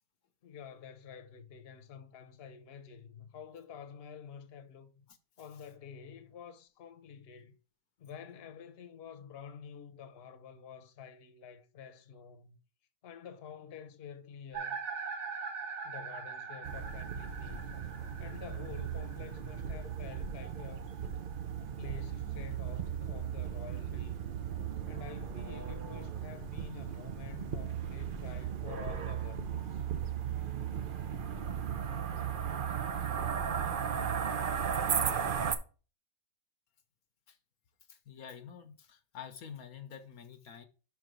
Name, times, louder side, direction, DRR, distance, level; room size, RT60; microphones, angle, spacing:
voice 1, 0.4-5.1 5.4-7.6 8.0-12.6 13.0-14.9 15.8-17.8 18.2-20.9 21.8-24.3 24.9-29.8, left 7 dB, 45° left, 1.0 m, -49 dB
sound 1, 14.5-22.5, right 5 dB, 80° right, 2.2 m, -44 dB
sound 2, 16.6-35.5, right 8 dB, 50° right, 0.6 m, -36 dB
voice 2, 37.9-40.7, left 8 dB, 70° left, 1.3 m, -48 dB
5.8 x 4.7 x 6.2 m
omnidirectional pair, 1.6 m